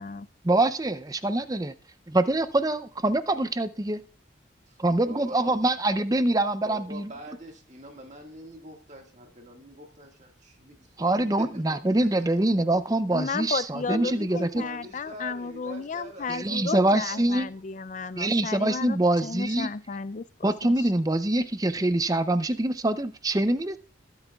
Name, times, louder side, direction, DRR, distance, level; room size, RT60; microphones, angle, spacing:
voice 1, 0.4-1.7 2.1-4.0 4.8-7.1 11.0-14.6 16.3-17.5 18.2-19.7 20.4-23.8, right 1 dB, 20° right, 12 dB, 0.5 m, -24 dB
voice 2, 5.1-5.6 6.6-11.5 12.0-12.1 13.8-17.4, right 1 dB, 40° right, 3 dB, 1.8 m, -43 dB
voice 3, 13.1-20.5, left 4 dB, 40° left, 17 dB, 0.4 m, -33 dB
21.0 x 8.9 x 2.3 m, 0.39 s
head